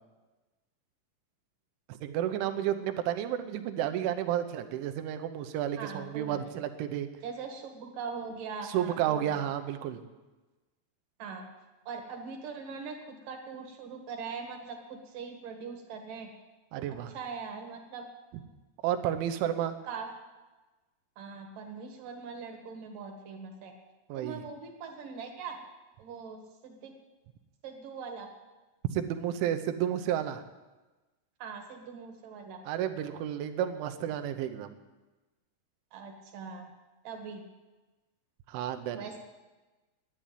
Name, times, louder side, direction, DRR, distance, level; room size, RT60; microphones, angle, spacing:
voice 1, 1.9-7.1 8.7-10.0 16.7-17.1 18.8-19.8 24.1-24.4 28.9-30.4 32.7-34.7 38.5-39.1, right 10 dB, 85° right, 8 dB, 3.3 m, -31 dB
voice 2, 5.8-6.4 7.2-9.4 11.2-11.5 11.9-16.3 16.8-18.1 19.8-20.1 21.2-23.7 24.2-25.6 26.0-26.9 27.6-28.3 31.4-32.6 35.9-36.7 37.0-37.4 38.9-39.2, right 5 dB, 55° right, 3 dB, 2.7 m, -41 dB
11.5 x 10.0 x 9.1 m, 1.2 s
omnidirectional pair, 5.5 m